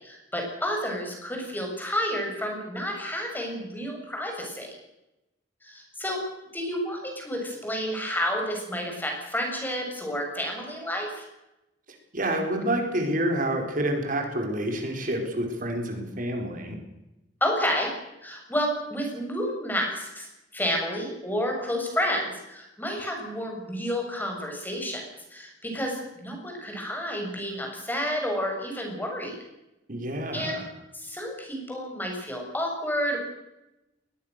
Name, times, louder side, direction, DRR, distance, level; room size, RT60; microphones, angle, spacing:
voice 1, 0.0-4.7 5.6-6.2 6.5-11.2 17.4-17.9 18.2-20.3 20.5-25.0 25.3-29.4 30.3-30.6 30.9-33.2, equal, 10° left, 1 dB, 6.9 m, -30 dB
voice 2, 11.9-16.8 29.9-30.6, right 1 dB, 50° right, 3 dB, 4.5 m, -28 dB
22.0 x 20.5 x 6.6 m, 0.94 s
head